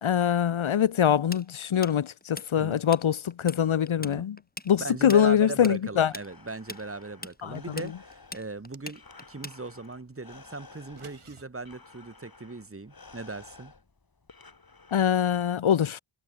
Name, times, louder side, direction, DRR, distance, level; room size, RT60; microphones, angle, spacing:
voice 1, 0.0-4.4 4.6-6.1 7.4-7.9 14.9-16.0, left 9 dB, 75° left, 0.9 m, -24 dB
Tools, 1.3-3.0 3.3-3.6 3.9-9.9, left 2 dB, 20° left, 2.0 m, -41 dB
voice 2, 4.8-13.7, right 3 dB, 25° right, 1.5 m, -38 dB
Breathing, 5.8-15.5, left 3 dB, 45° left, 3.1 m, -53 dB
sound 1, 8.5-9.4 10.7-11.4, right 5 dB, 85° right, 4.8 m, -53 dB
cardioid pair, 45°, 49 cm